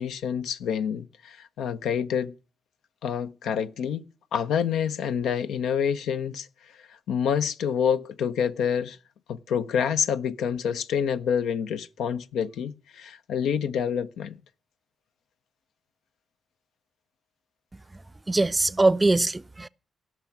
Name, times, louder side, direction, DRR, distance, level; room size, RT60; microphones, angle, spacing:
voice 1, 0.0-2.3 3.0-6.5 6.8-9.0 9.3-14.4, left 7 dB, 75° left, 0.6 m, -27 dB
voice 2, 18.3-19.7, right 2 dB, 25° right, 0.5 m, -22 dB
17.0 x 6.2 x 7.1 m
hypercardioid pair, 40°, 0 cm